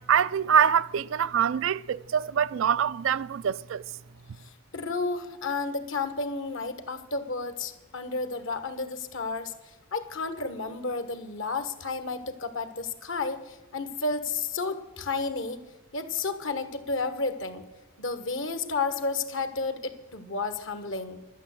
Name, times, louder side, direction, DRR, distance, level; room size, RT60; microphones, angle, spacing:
voice 1, 0.0-3.8, right 8 dB, 65° right, 0.3 m, -24 dB
voice 2, 4.4-9.5 9.9-15.6 15.9-17.6 18.0-21.2, left 3 dB, 60° left, 1.4 m, -32 dB
12.0 x 9.1 x 7.9 m
head